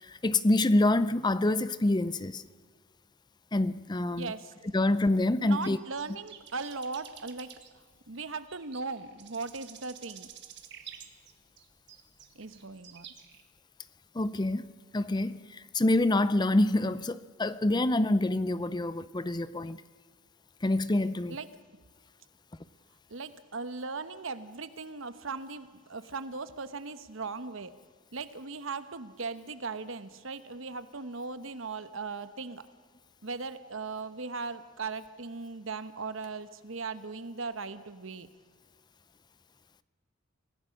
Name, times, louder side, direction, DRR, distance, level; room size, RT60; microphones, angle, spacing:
voice 1, 0.0-2.4 3.5-4.3 4.7-5.8 14.1-19.8 20.6-21.4, left 2 dB, 20° left, 0.5 m, -26 dB
voice 2, 4.2-4.5 5.4-10.3 12.3-13.1 21.3-21.5 23.1-27.7 28.1-32.7 33.2-38.3, right 4 dB, 70° right, 1.1 m, -38 dB
sound 1, 5.6-13.4, right 9 dB, 55° right, 1.7 m, -50 dB
25.5 x 16.0 x 6.5 m
head